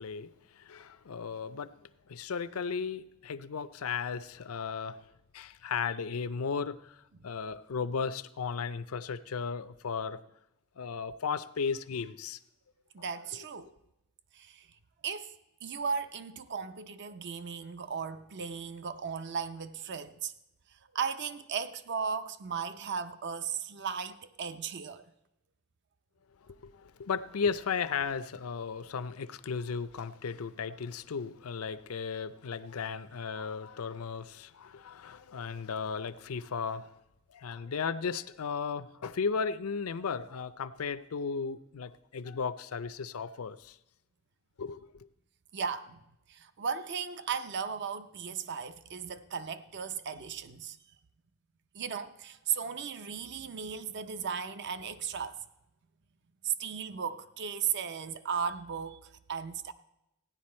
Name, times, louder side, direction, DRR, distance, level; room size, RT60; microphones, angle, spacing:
voice 1, 0.0-1.7 2.1-5.0 5.3-10.2 10.8-12.4 26.4-36.9 37.3-43.8 44.6-45.1, left 5 dB, 85° left, 0.5 m, -35 dB
voice 2, 12.9-13.7 14.3-14.7 15.0-15.3 15.6-20.3 20.9-25.0 45.5-46.0 46.3-50.8 51.7-55.4 56.4-59.7, right 6 dB, 55° right, 0.6 m, -36 dB
16.0 x 10.5 x 4.3 m
head